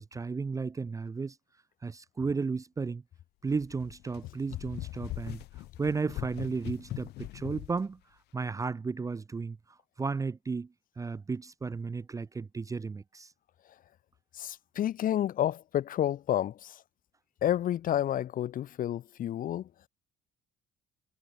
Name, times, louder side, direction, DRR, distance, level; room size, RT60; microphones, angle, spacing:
voice 1, 0.0-1.4 1.8-3.0 3.4-5.4 5.8-8.0 8.3-13.3, right 4 dB, 20° right, 0.5 m, -34 dB
sound 1, 3.5-7.8, left 17 dB, 75° left, 0.7 m, -41 dB
voice 2, 14.4-16.8 17.4-19.7, left 11 dB, 55° left, 1.0 m, -30 dB
cardioid pair, 110°, 17 cm